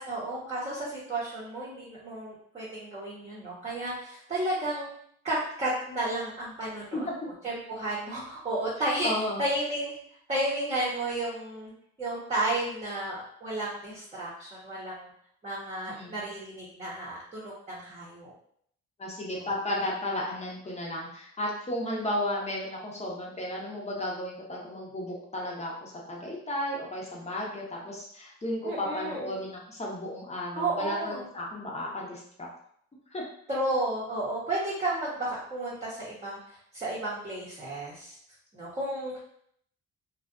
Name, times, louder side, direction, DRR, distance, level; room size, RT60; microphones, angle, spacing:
voice 1, 0.0-4.9 5.2-7.1 7.4-9.1 9.4-10.0 10.3-11.7 12.0-15.1 15.4-18.3 19.4-19.5 28.6-29.4 30.5-31.3 33.5-36.4 36.7-38.2 38.5-39.2, right 1 dB, 20° right, -8 dB, 0.9 m, -32 dB
voice 2, 9.0-9.4 15.9-16.2 19.0-32.5 33.1-33.2, left 1 dB, 20° left, -3 dB, 0.8 m, -34 dB
2.4 x 2.3 x 2.5 m, 0.66 s
cardioid pair, 90°, 30 cm